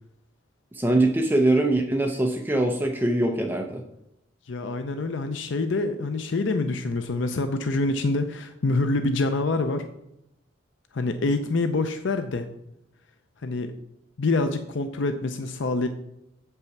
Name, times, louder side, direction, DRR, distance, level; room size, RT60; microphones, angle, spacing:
voice 1, 0.7-3.8, right 1 dB, 10° right, 3 dB, 0.6 m, -22 dB
voice 2, 4.5-9.9 10.9-12.5 13.4-13.7 14.2-15.9, left 3 dB, 65° left, 8 dB, 0.6 m, -26 dB
8.1 x 5.5 x 5.9 m, 0.82 s
head